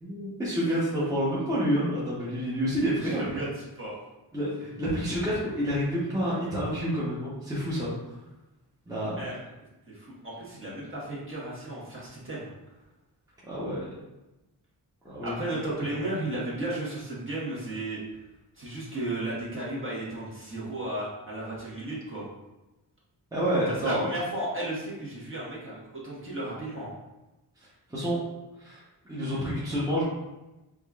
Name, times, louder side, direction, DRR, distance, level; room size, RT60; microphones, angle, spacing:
voice 1, 0.0-3.2 4.3-7.9 8.9-9.2 13.5-13.9 15.0-15.3 15.9-16.0 23.3-24.1 27.9-28.2 28.6-28.8 29.1-30.0, equal, 10° right, -8 dB, 1.0 m, -28 dB
voice 2, 3.0-3.9 9.2-9.4 9.9-12.5 15.2-18.0 18.5-22.3 23.7-26.9, right 1 dB, 30° right, -7 dB, 1.3 m, -34 dB
4.9 x 2.4 x 2.4 m, 1.0 s
wide cardioid pair, 90°, 41 cm